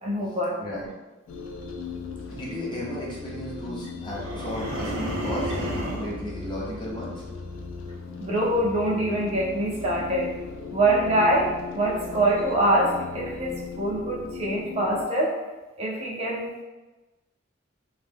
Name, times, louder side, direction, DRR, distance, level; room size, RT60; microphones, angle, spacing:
voice 1, 0.0-0.9 8.2-10.3 10.7-11.5 11.7-15.4 15.8-16.6, right 1 dB, 30° right, -3 dB, 0.4 m, -24 dB
voice 2, 0.6-0.9 2.3-7.2, left 1 dB, 25° left, -5 dB, 0.6 m, -34 dB
sound 1, 1.3-15.0, left 5 dB, 75° left, 0.3 m, -38 dB
sound 2, 4.1-6.2, equal, 90° right, 0.5 m, -31 dB
2.1 x 2.0 x 3.2 m, 1.1 s
head